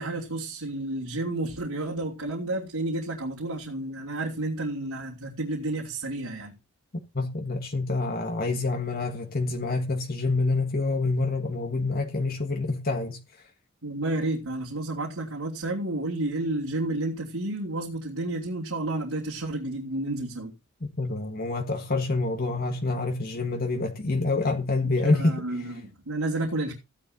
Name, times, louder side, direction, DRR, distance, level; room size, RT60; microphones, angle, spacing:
voice 1, 0.0-6.5 13.8-20.5 25.0-26.7, right 2 dB, 80° right, 3.0 m, -31 dB
voice 2, 7.1-13.4 21.0-25.7, left 3 dB, 45° left, 1.5 m, -27 dB
16.0 x 10.0 x 2.8 m
head